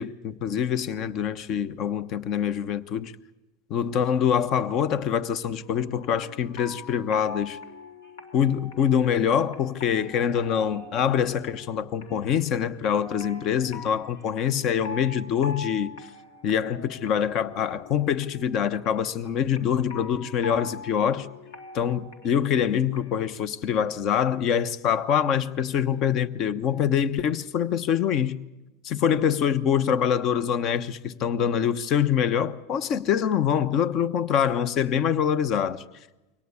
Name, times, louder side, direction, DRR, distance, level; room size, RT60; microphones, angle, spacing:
voice 1, 0.0-3.1 3.7-7.6 8.3-15.9 16.4-21.3 21.7-28.4 28.8-35.8, left 8 dB, 50° left, 1.1 m, -25 dB
sound 1, 5.6-23.2, left 3 dB, 80° left, 2.8 m, -43 dB
23.5 x 18.0 x 8.5 m
hypercardioid pair, 100°, 0 cm